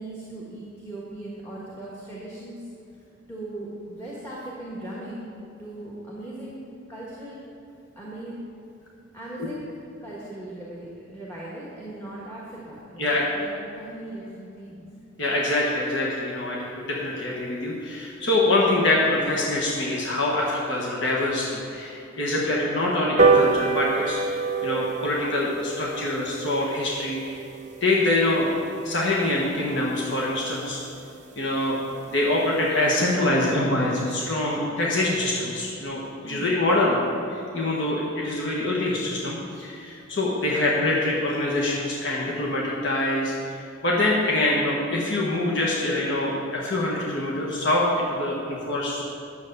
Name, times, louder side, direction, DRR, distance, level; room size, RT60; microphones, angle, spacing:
voice 1, 0.0-2.7 3.3-5.3 5.6-6.6 6.9-7.4 7.9-8.3 9.1-9.6 10.0-14.8 36.2-36.6, right 1 dB, 15° left, -7 dB, 1.5 m, -38 dB
voice 2, 15.2-27.4 27.8-28.5 28.8-30.8 31.4-31.8 32.1-49.0, left 2 dB, 55° left, -4 dB, 1.4 m, -25 dB
sound 1, 23.2-29.9 30.4-30.5 30.8-30.9 31.2-31.3 31.5-31.6 31.9-32.2 32.6-32.7, right 4 dB, 35° right, 0.8 m, -26 dB
10.5 x 7.1 x 6.7 m, 2.7 s
head